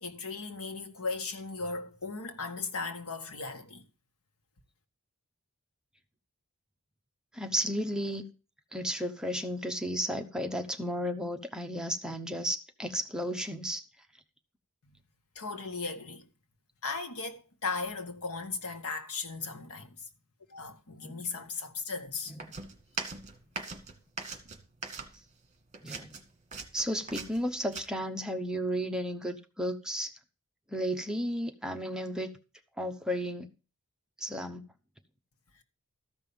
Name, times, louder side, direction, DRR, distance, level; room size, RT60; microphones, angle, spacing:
voice 1, 0.0-3.9 14.9-15.0 15.3-16.3 16.8-20.0 20.5-22.3, left 4 dB, 80° left, 1.7 m, -37 dB
voice 2, 7.3-8.2 8.7-13.8 21.0-21.2 25.8-26.2 26.7-30.1 30.7-32.3 32.8-33.5 34.2-34.7, equal, 5° right, 1.0 m, -33 dB
sound 1, 22.4-25.5 25.7-27.8, right 4 dB, 35° right, 1.9 m, -40 dB
13.5 x 5.7 x 7.0 m
head